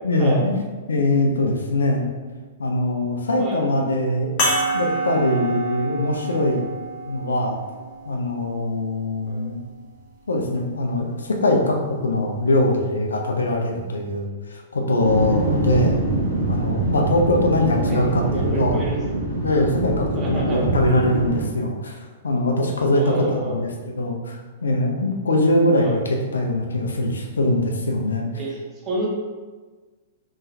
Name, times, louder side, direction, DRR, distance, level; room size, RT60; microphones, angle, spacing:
voice 1, 0.0-0.6 0.9-2.1 2.6-4.3 4.7-6.7 7.0-7.6 8.0-9.6 10.3-16.0 16.5-18.8 19.4-22.0 22.2-28.3, left 1 dB, 70° left, 1 dB, 0.5 m, -22 dB
sound 1, 4.4-9.2 10.0-10.1 12.2-12.3, right 1 dB, 35° left, 1.0 m, -28 dB
sound 2, 15.0-21.4, right 2 dB, 65° right, 1.0 m, -24 dB
voice 2, 17.9-19.0 20.1-20.7 22.9-23.6 25.8-26.0 28.3-29.1, right 2 dB, 20° right, -4 dB, 1.0 m, -29 dB
3.8 x 3.0 x 2.6 m, 1.3 s
figure-of-eight pair, 105°, 0 cm